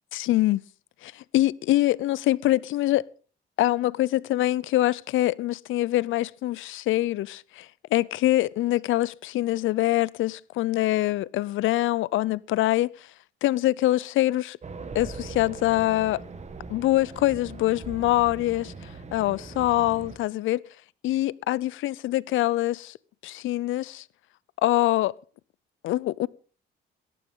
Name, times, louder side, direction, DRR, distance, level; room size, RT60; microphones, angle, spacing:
voice 1, 0.1-0.6 1.0-3.0 3.6-12.9 13.4-14.6 14.9-16.2 16.7-18.7 19.1-20.6 21.0-22.9 23.2-24.0 24.6-25.1 25.8-26.3, left 15 dB, 80° left, 0.6 m, -24 dB
Race car auto racing, 14.6-20.2, right 4 dB, 35° right, 2.0 m, -41 dB
18.0 x 14.0 x 3.8 m
cardioid pair, 90°, 20 cm